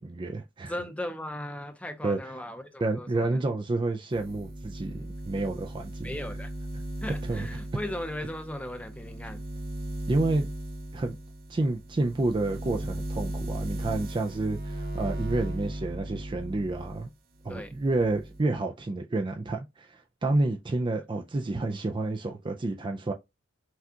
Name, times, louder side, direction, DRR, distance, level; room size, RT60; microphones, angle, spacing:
voice 1, 0.0-0.7 2.0-2.2 2.8-6.1 7.3-7.5 10.1-10.5 10.9-11.2 11.5-17.1 17.4-23.1, right 2 dB, 25° right, 0.4 m, -29 dB
voice 2, 0.7-3.4 6.0-6.5 7.0-9.4 17.5-17.7, left 1 dB, 5° left, 0.7 m, -37 dB
sound 1, 4.1-17.1 17.4-18.4, right 1 dB, 50° right, 1.0 m, -37 dB
5.8 x 2.3 x 2.7 m
head